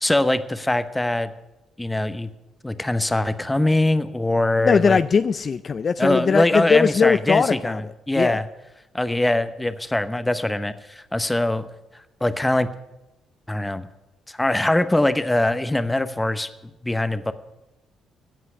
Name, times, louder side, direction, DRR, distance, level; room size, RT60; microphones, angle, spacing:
voice 1, 0.0-1.3 1.8-2.3 2.6-5.0 6.0-8.5 8.9-11.7 12.2-12.7 13.5-13.9 14.3-16.5 16.8-17.3, left 1 dB, 10° left, 12 dB, 0.9 m, -22 dB
voice 2, 4.6-8.4, left 5 dB, 45° left, 13 dB, 0.4 m, -20 dB
16.5 x 5.6 x 9.5 m, 0.97 s
cardioid pair, 90°, 0 cm